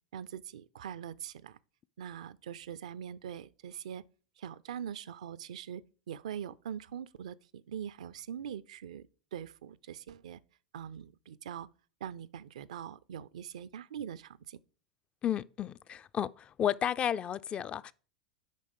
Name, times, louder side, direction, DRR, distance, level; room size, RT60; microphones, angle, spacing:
voice 1, 0.1-1.6 2.0-4.0 4.4-10.4 10.7-11.7 12.0-14.6, right 9 dB, 70° right, 0.4 m, -43 dB
voice 2, 15.2-17.9, left 9 dB, 30° left, 0.4 m, -32 dB
8.3 x 5.2 x 5.1 m
figure-of-eight pair, 85°, 4 cm